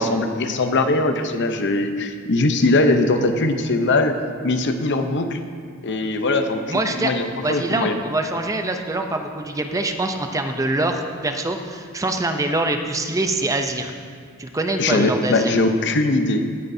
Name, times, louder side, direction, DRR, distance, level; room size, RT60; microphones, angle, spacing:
voice 1, 0.0-4.2 4.4-5.4 5.8-8.0 14.8-16.5, left 2 dB, 55° left, 7 dB, 0.7 m, -21 dB
voice 2, 6.7-7.1 7.4-13.9 14.4-15.5, right 2 dB, 15° right, 5 dB, 0.5 m, -24 dB
17.0 x 9.6 x 2.7 m, 2.1 s
head